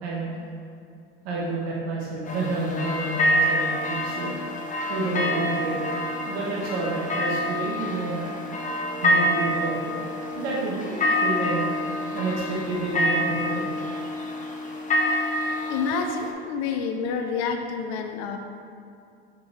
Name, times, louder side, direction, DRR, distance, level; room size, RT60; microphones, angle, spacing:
voice 1, 0.0-0.3 1.2-4.3 4.9-5.8 6.3-8.3 9.0-9.9 10.3-11.7 12.1-13.7, right 2 dB, 70° right, -5 dB, 1.3 m, -29 dB
sound 1, 2.2-16.3, left 1 dB, 25° left, 1.1 m, -27 dB
voice 2, 15.7-18.4, left 5 dB, 55° left, 5 dB, 0.7 m, -28 dB
5.3 x 5.3 x 4.6 m, 2.4 s
hypercardioid pair, 80°, 32 cm